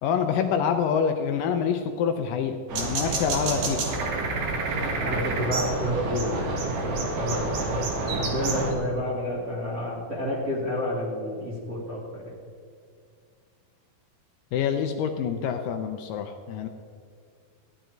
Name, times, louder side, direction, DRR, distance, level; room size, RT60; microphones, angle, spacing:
voice 1, 0.0-3.8 14.5-16.7, left 7 dB, 80° left, 6 dB, 2.1 m, -26 dB
sound 1, 2.7-8.7, right 3 dB, 70° right, 3.3 m, -28 dB
voice 2, 5.0-12.4, left 1 dB, 30° right, -6 dB, 2.0 m, -30 dB
15.0 x 10.5 x 4.5 m, 2.2 s
omnidirectional pair, 4.3 m